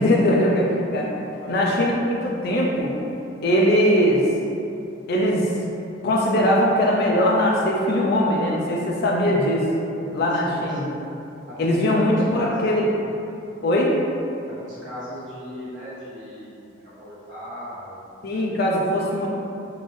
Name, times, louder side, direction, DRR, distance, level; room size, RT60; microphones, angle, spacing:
voice 1, 0.0-1.1 1.5-2.9 3.4-4.2 5.1-5.5 6.0-9.6 10.1-10.9 11.6-12.9 13.6-13.9 18.2-19.3, equal, 55° left, -3 dB, 0.4 m, -20 dB
voice 2, 1.3-1.8 10.3-11.0 11.5-12.9 14.5-18.1, equal, 75° right, -11 dB, 1.5 m, -38 dB
3.7 x 2.5 x 3.2 m, 2.8 s
head